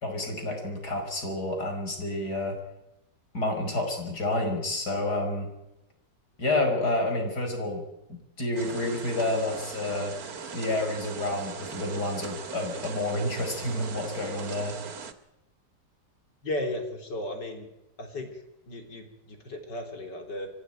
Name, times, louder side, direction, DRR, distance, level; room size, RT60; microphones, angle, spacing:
voice 1, 0.0-2.6 3.3-5.5 6.4-7.8 8.1-10.2 10.5-14.8, left 2 dB, 70° left, 3 dB, 5.9 m, -29 dB
sound 1, 8.6-15.1, right 5 dB, 60° right, 2.0 m, -40 dB
voice 2, 16.4-17.7 18.0-20.5, left 1 dB, 90° left, 4 dB, 4.2 m, -35 dB
24.5 x 16.0 x 9.1 m, 0.92 s
omnidirectional pair, 1.8 m